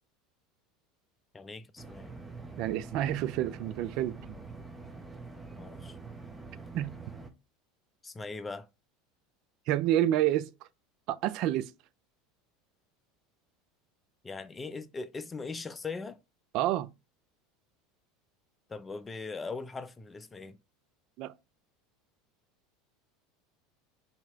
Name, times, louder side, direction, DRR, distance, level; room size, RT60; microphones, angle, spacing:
voice 1, 1.3-2.2 5.6-6.0 8.0-8.7 14.2-16.2 18.7-20.6, left 4 dB, 20° left, 0.4 m, -40 dB
sound 1, 1.8-7.3, right 3 dB, 15° right, 0.7 m, -45 dB
voice 2, 2.6-4.3 6.7-6.9 9.7-10.5 11.1-11.7 16.5-16.9 21.2-21.3, right 13 dB, 55° right, 0.3 m, -28 dB
2.8 x 2.8 x 4.4 m
hypercardioid pair, 80°, 0 cm